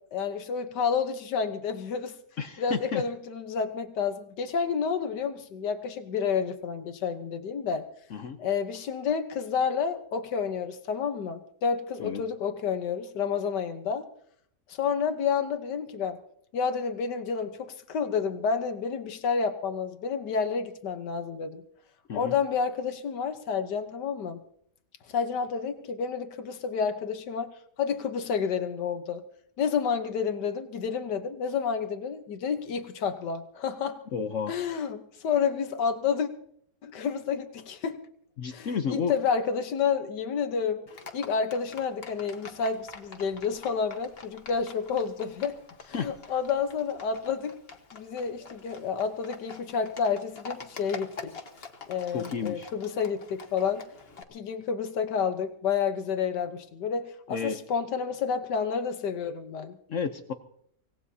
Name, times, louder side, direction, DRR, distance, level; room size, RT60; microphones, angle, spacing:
voice 1, 0.1-2.2 2.6-7.9 8.4-14.1 14.7-16.2 16.5-21.6 22.1-24.4 25.1-27.5 27.8-29.2 29.6-34.0 34.5-36.3 36.8-38.0 38.5-40.8 41.1-45.6 45.9-47.6 47.9-51.3 51.9-53.8 54.3-59.8, left 6 dB, 85° left, 8 dB, 1.7 m, -30 dB
voice 2, 2.4-3.0 8.1-8.4 12.0-12.2 22.1-22.4 34.1-34.5 38.4-39.1 45.9-46.1 52.1-52.7 57.3-57.6 59.9-60.3, left 6 dB, 55° left, 8 dB, 1.1 m, -31 dB
Livestock farm animals working animals, 40.9-54.2, left 4 dB, 40° left, 1.4 m, -46 dB
25.0 x 18.0 x 2.8 m, 0.68 s
omnidirectional pair, 1.8 m